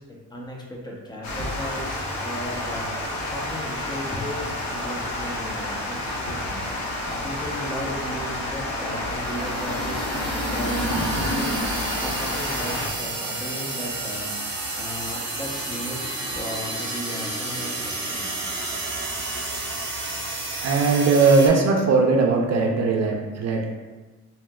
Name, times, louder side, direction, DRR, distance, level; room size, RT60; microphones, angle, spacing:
voice 1, 0.1-18.5, equal, 15° left, -3 dB, 0.7 m, -36 dB
Water, 1.2-12.9, left 1 dB, 65° left, 0.7 m, -29 dB
sound 1, 9.0-21.5, right 2 dB, 40° right, 0.9 m, -31 dB
voice 2, 20.6-23.6, right 4 dB, 60° right, 1 dB, 0.5 m, -19 dB
3.3 x 2.8 x 2.3 m, 1.3 s
cardioid pair, 90°, 30 cm